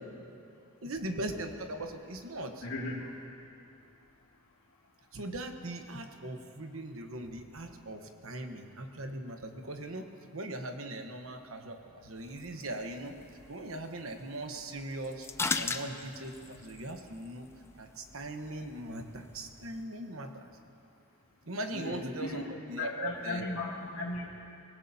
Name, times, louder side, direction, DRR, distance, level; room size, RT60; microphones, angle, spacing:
voice 1, 0.8-2.7 5.1-13.1 13.5-15.3 15.6-17.5 17.8-20.5 21.5-23.6, right 1 dB, 70° right, 5 dB, 1.1 m, -40 dB
voice 2, 2.6-3.1 21.7-24.3, left 2 dB, 75° left, -3 dB, 2.4 m, -37 dB
sound 1, 12.2-19.9, left 3 dB, 10° left, 0.4 m, -41 dB
24.5 x 18.5 x 2.8 m, 2.6 s
head